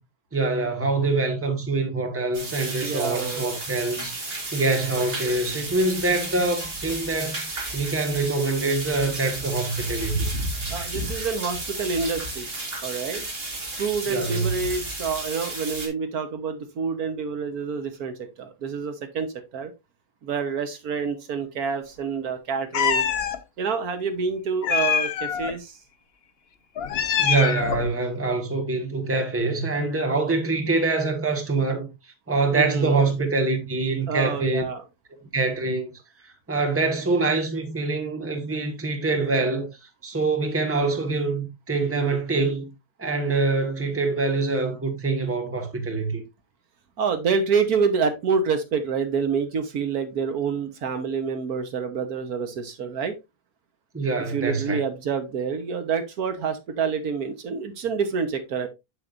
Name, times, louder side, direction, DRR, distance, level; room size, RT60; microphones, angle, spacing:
voice 1, 0.3-4.1 4.5-7.4 7.7-10.2 14.1-14.5 27.2-31.9 32.3-34.6 35.3-35.9 36.5-39.7 40.0-42.7 43.0-46.2 53.9-54.8, right 3 dB, 10° right, 1.2 m, -25 dB
sound 1, 2.3-15.9, right 2 dB, 40° right, 2.1 m, -33 dB
voice 2, 2.8-3.6 10.7-12.5 12.8-13.3 13.7-19.7 20.2-23.1 23.6-25.8 32.5-33.0 34.1-34.8 47.0-53.1 54.2-58.7, right 5 dB, 70° right, 1.5 m, -27 dB
Meow, 22.7-23.4 24.6-25.5 26.8-27.9, left 8 dB, 60° left, 0.7 m, -24 dB
7.7 x 7.5 x 2.5 m
omnidirectional pair, 1.7 m